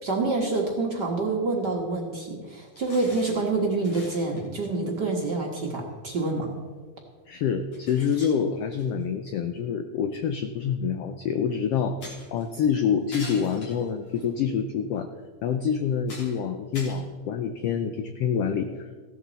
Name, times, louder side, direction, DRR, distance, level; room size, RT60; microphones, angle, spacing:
voice 1, 0.0-6.6, right 3 dB, 45° right, -1 dB, 1.5 m, -27 dB
sound 1, 2.7-3.5 3.8-4.4 5.9-6.0 7.0-7.1 7.7-9.0 10.2-10.3 12.0-12.5 13.1-14.3 14.9-15.0 15.6-15.7 16.0-16.4 16.7-17.7, left 1 dB, 60° left, 4.7 m, -43 dB
voice 2, 7.3-12.0 12.3-15.1 15.4-18.9, left 7 dB, 80° left, 7 dB, 1.4 m, -27 dB
15.5 x 11.5 x 4.1 m, 1.5 s
omnidirectional pair, 3.5 m